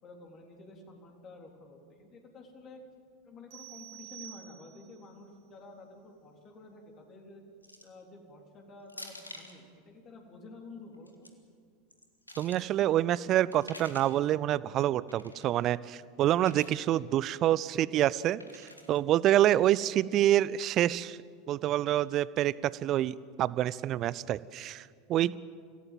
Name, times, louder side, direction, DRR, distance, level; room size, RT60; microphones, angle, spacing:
voice 1, 0.0-2.8 3.2-7.4 7.8-11.3, left 3 dB, 35° left, 1 dB, 3.8 m, -50 dB
sound 1, 3.5-5.0, right 14 dB, 55° right, 3.2 m, -48 dB
sound 2, 7.6-8.0 8.9-9.6 10.9-11.3 11.9-12.7 13.5-14.2 15.1-15.5 16.4-16.9 18.4-19.0, left 1 dB, 90° left, 1.8 m, -48 dB
voice 2, 12.4-21.2 21.5-25.4, right 13 dB, 40° right, 20 dB, 0.6 m, -27 dB
26.0 x 17.0 x 7.6 m, 2.3 s
figure-of-eight pair, 80°, 0 cm